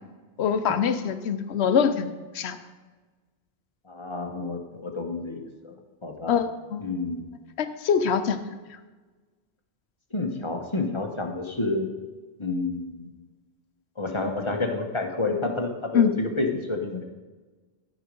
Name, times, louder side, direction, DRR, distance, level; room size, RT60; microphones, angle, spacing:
voice 1, 0.4-2.1 2.3-2.6 6.3-6.8 7.6-8.4 15.9-16.1, left 7 dB, 85° left, 10 dB, 1.0 m, -23 dB
voice 2, 3.9-5.7 6.0-6.4 6.8-7.2 10.1-11.9 12.4-13.1 14.0-17.0, left 3 dB, 30° left, 3 dB, 1.0 m, -29 dB
13.0 x 5.1 x 5.3 m, 1.3 s
omnidirectional pair, 1.1 m